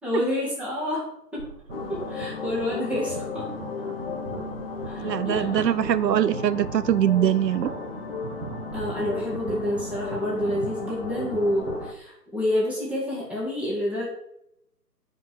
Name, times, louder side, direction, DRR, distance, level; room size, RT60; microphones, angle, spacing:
voice 1, 0.0-1.5 1.9-3.5 4.9-5.9 8.7-14.1, left 1 dB, 5° right, -6 dB, 2.0 m, -28 dB
sound 1, 1.3-11.9, right 5 dB, 65° right, 2.0 m, -38 dB
sound 2, 1.7-11.9, left 6 dB, 35° left, 0.9 m, -35 dB
voice 2, 5.0-7.7, right 10 dB, 80° right, 17 dB, 0.6 m, -22 dB
9.0 x 5.4 x 6.1 m, 0.76 s
hypercardioid pair, 150°, 49 cm